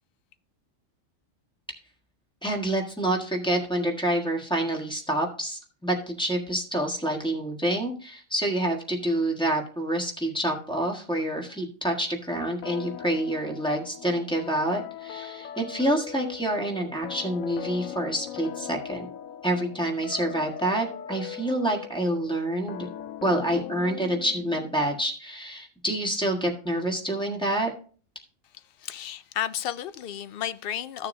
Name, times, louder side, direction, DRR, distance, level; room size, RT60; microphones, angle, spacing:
voice 1, 2.4-19.1 19.4-22.9 23.2-27.7, right 1 dB, 5° left, 1.5 m, -27 dB
sound 1, 12.6-25.0, left 10 dB, 85° left, 1.0 m, -40 dB
voice 2, 28.5-31.1, left 10 dB, 65° left, 0.6 m, -33 dB
14.0 x 6.8 x 2.7 m
omnidirectional pair, 1.4 m